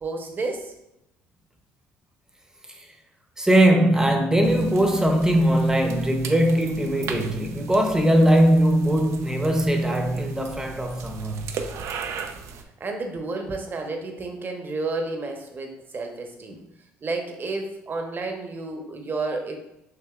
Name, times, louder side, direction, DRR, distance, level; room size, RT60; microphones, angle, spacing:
voice 1, 0.0-0.7 12.8-16.6 17.0-19.6, right 3 dB, 40° right, 1.0 m, -31 dB
voice 2, 3.4-11.7, right 1 dB, 10° right, 0.8 m, -20 dB
sound 1, 4.4-12.6, right 6 dB, 60° right, 0.5 m, -38 dB
6.7 x 2.7 x 2.4 m
supercardioid pair, 70°, 6 cm